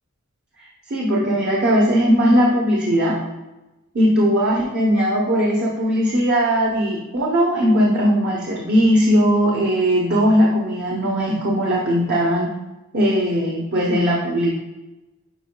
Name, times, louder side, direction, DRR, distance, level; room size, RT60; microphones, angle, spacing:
voice 1, 0.9-3.2 3.9-12.5 12.9-14.5, equal, 55° right, -3 dB, 1.0 m, -18 dB
9.0 x 4.7 x 2.3 m, 1.0 s
head